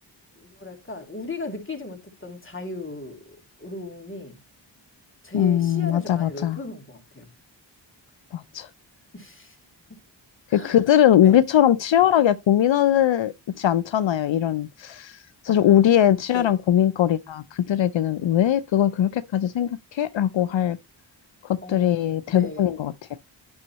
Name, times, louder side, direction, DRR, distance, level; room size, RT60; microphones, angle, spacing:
voice 1, 0.4-4.4 5.2-7.3 9.1-9.6 10.5-10.8 11.2-11.4 15.5-15.8 16.3-16.6 21.6-22.7, left 2 dB, 25° left, 2.6 m, -37 dB
voice 2, 5.3-6.6 8.3-8.7 10.5-20.8 21.4-22.9, left 10 dB, 80° left, 0.5 m, -20 dB
9.6 x 6.3 x 2.9 m
wide cardioid pair, 60°, 45 cm